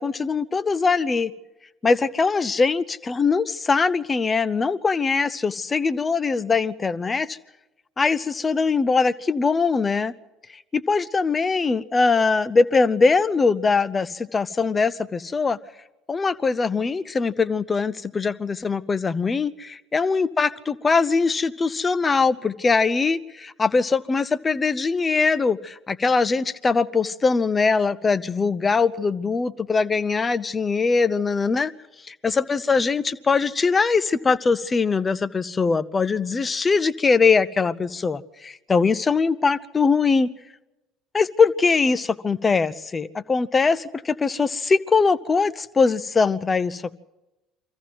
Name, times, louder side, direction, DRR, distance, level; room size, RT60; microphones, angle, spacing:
voice 1, 0.0-1.3 1.8-7.4 8.0-10.1 10.5-15.6 16.1-31.7 32.1-40.3 41.1-46.9, left 4 dB, 25° left, 0.7 m, -22 dB
24.5 x 14.5 x 7.7 m
hypercardioid pair, 65°, 0 cm